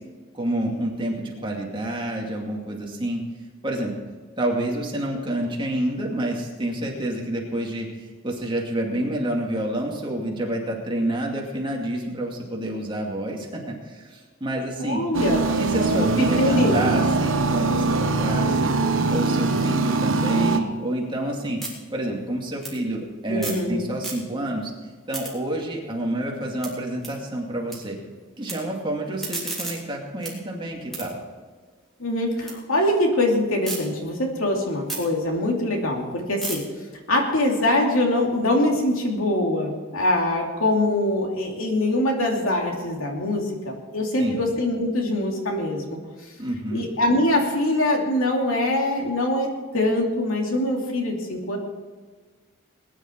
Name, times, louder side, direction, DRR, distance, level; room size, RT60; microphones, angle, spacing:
voice 1, 0.3-3.2 3.6-3.9 4.4-15.0 15.6-18.7 19.1-21.6 21.9-24.7 25.1-28.0 28.4-31.2 44.2-44.5 46.4-46.9, right 1 dB, 25° right, -1 dB, 2.4 m, -28 dB
voice 2, 14.8-15.6 15.9-16.8 23.3-23.8 32.0-36.6 37.1-46.0 46.7-49.5 49.7-51.6, left 1 dB, 75° left, 1 dB, 2.8 m, -23 dB
sound 1, 15.1-20.6, right 3 dB, 65° right, 1.1 m, -22 dB
sound 2, 20.7-23.7 23.9-24.6 24.9-27.8 28.1-28.5 29.0-32.6 32.9-33.8 34.2-38.4, right 2 dB, ahead, 3.5 m, -37 dB
20.5 x 10.5 x 4.6 m, 1.4 s
head